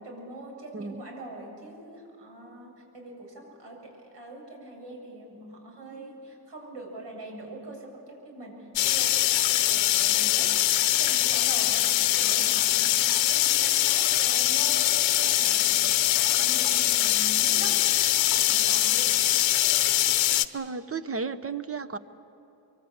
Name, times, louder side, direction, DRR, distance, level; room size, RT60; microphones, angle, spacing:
voice 1, 0.0-11.9 12.2-13.0 13.3-15.7 16.1-19.1, right 1 dB, 65° right, 1 dB, 7.8 m, -43 dB
sound 1, 8.8-20.5, left 13 dB, 75° left, 0.9 m, -23 dB
voice 2, 20.5-22.0, right 5 dB, 30° right, 12 dB, 0.9 m, -33 dB
24.5 x 23.5 x 8.8 m, 3.0 s
cardioid pair, 125°, 46 cm